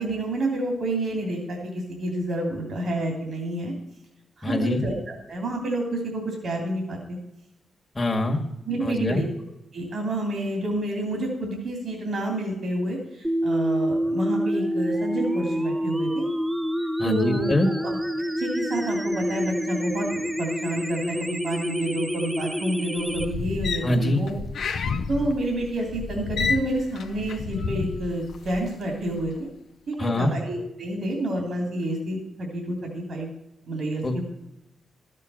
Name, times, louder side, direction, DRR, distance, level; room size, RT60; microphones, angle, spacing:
voice 1, 0.0-3.7 4.4-7.2 8.6-9.3 9.7-16.3 17.0-18.0 18.4-24.3 24.7-29.5 29.9-33.3 33.7-34.2, right 1 dB, 75° right, 1 dB, 2.9 m, -29 dB
voice 2, 4.4-4.8 7.9-8.4 8.8-9.2 17.0-17.7 23.8-24.2 30.0-30.3 34.0-34.2, left 1 dB, 30° left, 2 dB, 1.7 m, -24 dB
sound 1, 13.2-23.3, equal, 15° right, 1.3 m, -27 dB
sound 2, 23.0-28.7 29.1-29.4, left 5 dB, 80° left, 0.7 m, -30 dB
12.5 x 7.6 x 6.3 m, 0.90 s
supercardioid pair, 55°, 0 cm